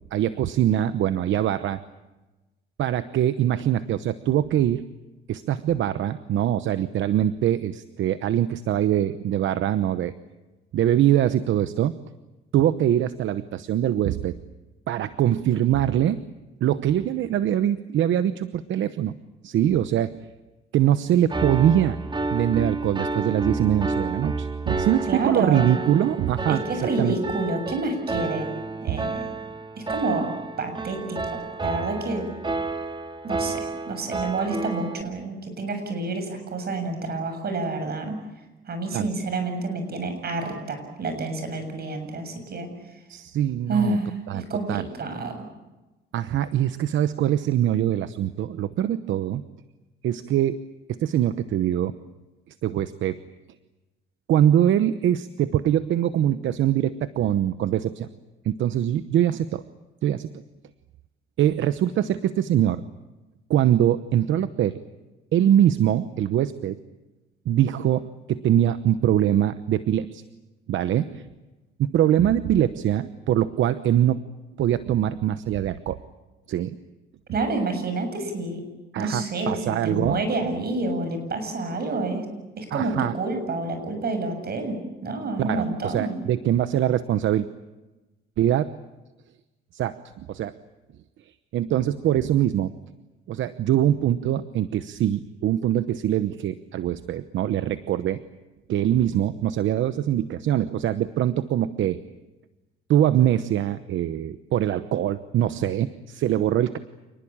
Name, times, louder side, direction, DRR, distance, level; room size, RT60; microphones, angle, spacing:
voice 1, 0.1-1.8 2.8-4.8 5.3-10.1 10.7-12.0 12.5-14.4 14.9-16.2 16.6-19.1 19.4-20.3 20.7-22.0 22.3-27.2 38.9-39.1 43.1-44.0 44.3-44.8 46.1-49.4 50.0-50.6 50.9-52.0 52.6-53.2 54.3-58.1 58.4-59.6 60.0-60.3 61.4-62.8 63.5-64.8 65.3-66.8 67.5-70.2 70.7-71.2 71.8-74.2 74.6-76.0 76.5-76.8 78.9-80.2 82.7-83.1 85.4-87.5 88.4-88.8 89.7-90.5 91.2-92.8 93.3-98.2 98.7-102.0 102.9-106.8, right 11 dB, 75° right, 13 dB, 1.0 m, -23 dB
Piano, 21.3-35.0, right 3 dB, 25° right, 2.1 m, -30 dB
voice 2, 25.1-25.7 26.5-28.5 28.8-29.2 29.9-30.3 30.6-32.3 33.2-38.2 38.7-42.7 43.7-45.3 77.3-78.6 79.0-82.3 82.6-86.2, right 3 dB, 50° right, 7 dB, 7.4 m, -28 dB
28.0 x 20.0 x 8.8 m, 1.1 s
cardioid pair, 90°, 20 cm